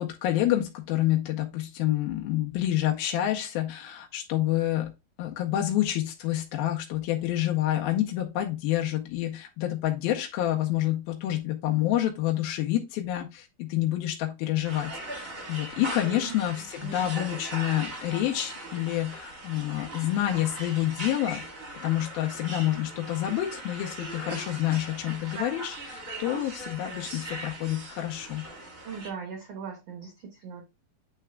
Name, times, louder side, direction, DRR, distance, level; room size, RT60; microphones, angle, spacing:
voice 1, 0.0-4.9 5.2-28.4, left 13 dB, 85° left, 1 dB, 2.6 m, -28 dB
sound 1, 14.6-29.1, right 2 dB, 40° right, 1.1 m, -39 dB
voice 2, 16.0-16.3 16.8-17.1 28.8-30.6, right 6 dB, 75° right, 2 dB, 1.4 m, -39 dB
8.9 x 3.4 x 3.5 m, 0.25 s
omnidirectional pair, 4.4 m